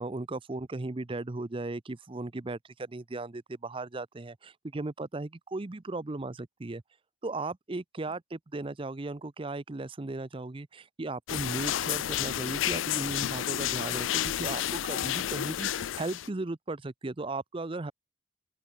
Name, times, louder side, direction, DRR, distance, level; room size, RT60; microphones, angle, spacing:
voice 1, 0.0-6.8 7.2-17.9, right 2 dB, 25° right, 0.6 m, -36 dB
sound 1, 11.3-16.3, left 11 dB, 80° left, 0.4 m, -31 dB
open air
head